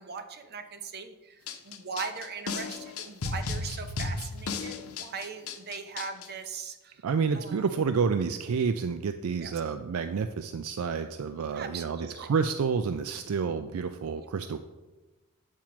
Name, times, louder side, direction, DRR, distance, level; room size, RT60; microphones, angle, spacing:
voice 1, 0.0-1.4 1.6-6.9 7.3-7.7 9.4-9.5 11.5-12.3 14.2-14.3, right 5 dB, 45° right, 7 dB, 0.8 m, -40 dB
sound 1, 1.5-6.3, left 3 dB, 85° left, 0.8 m, -34 dB
voice 2, 7.0-14.6, right 5 dB, 70° right, 9 dB, 0.4 m, -29 dB
8.9 x 4.4 x 6.0 m, 1.2 s
head